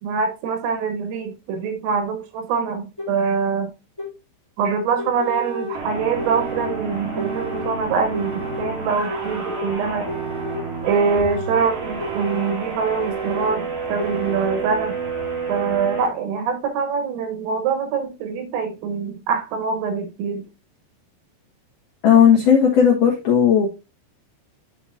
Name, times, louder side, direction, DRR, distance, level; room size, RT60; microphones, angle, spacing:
voice 1, 0.0-3.7 4.6-10.1 10.8-15.0 15.5-20.4, right 5 dB, 85° right, 3.7 m, -24 dB
sound 1, 3.0-3.1 4.0-4.1 5.0-5.7 6.2-6.7 7.2-7.7 8.1-8.7 9.1-9.7 10.1-10.6 11.0-11.6 12.0-12.6 13.0-13.5 14.0-14.5, equal, 5° left, 1.8 m, -31 dB
sound 2, 5.7-16.1, right 4 dB, 50° right, 1.9 m, -30 dB
voice 2, 22.0-23.7, left 8 dB, 75° left, 1.9 m, -15 dB
11.5 x 4.2 x 2.5 m
omnidirectional pair, 5.8 m